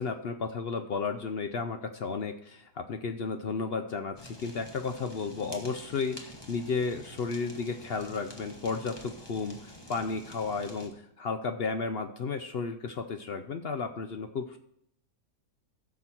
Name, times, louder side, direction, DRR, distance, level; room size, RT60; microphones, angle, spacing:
voice 1, 0.0-14.6, left 4 dB, 65° left, 7 dB, 0.6 m, -33 dB
Fire, 4.2-10.9, equal, 15° left, 1.2 m, -48 dB
15.0 x 6.3 x 4.4 m, 0.73 s
omnidirectional pair, 1.7 m